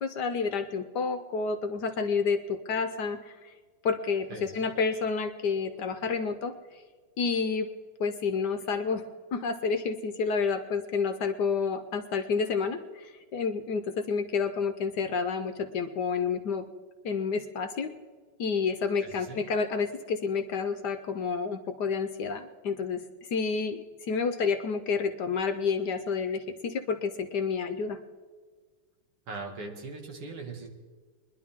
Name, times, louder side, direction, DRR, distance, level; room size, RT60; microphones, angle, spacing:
voice 1, 0.0-3.5 3.8-6.8 7.2-7.7 8.0-9.0 9.3-16.6 17.0-17.9 18.4-28.0, left 5 dB, 65° left, 8 dB, 1.1 m, -29 dB
voice 2, 4.3-4.7 19.0-19.4 29.3-30.7, right 3 dB, 90° right, 2 dB, 2.9 m, -40 dB
23.0 x 11.0 x 3.6 m, 1.5 s
omnidirectional pair, 2.4 m